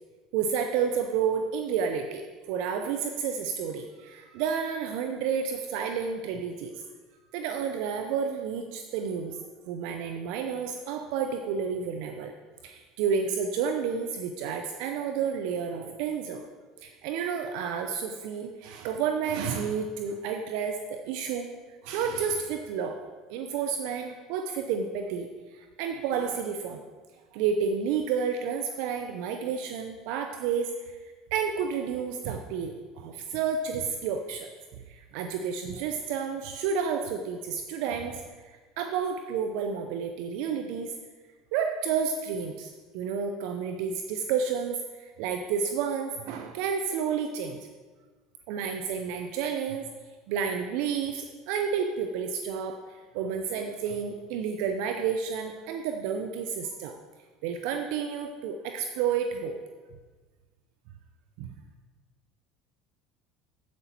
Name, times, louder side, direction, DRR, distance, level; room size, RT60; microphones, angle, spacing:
voice 1, 0.3-2.2 2.5-6.7 7.3-9.4 9.7-12.3 12.6-16.4 16.8-21.6 21.8-23.0 23.3-25.3 25.5-26.8 27.3-31.0 31.3-34.5 34.9-40.9 41.5-47.6 48.5-49.9 50.3-57.0 57.4-59.6 61.4-61.5, right 6 dB, 65° right, 5 dB, 0.6 m, -30 dB
9.4 x 8.0 x 4.4 m, 1.4 s
hypercardioid pair, 75°, 0 cm